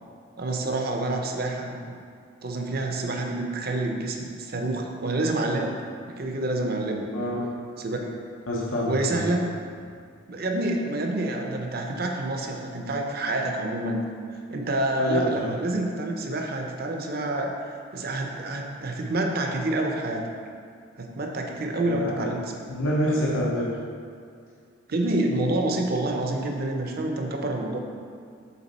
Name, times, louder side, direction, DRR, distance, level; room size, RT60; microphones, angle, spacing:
voice 1, 0.4-2.0 2.4-5.7 6.1-7.1 7.8-8.0 8.9-9.5 10.3-14.0 14.5-17.5 17.9-20.2 21.0-22.4 24.9-27.8, right 2 dB, 50° right, 2 dB, 0.7 m, -27 dB
voice 2, 7.1-7.5 8.5-9.2 15.0-15.5 21.8-22.3 22.7-23.7, equal, 90° left, -5 dB, 0.9 m, -27 dB
6.9 x 3.9 x 4.2 m, 2.2 s
head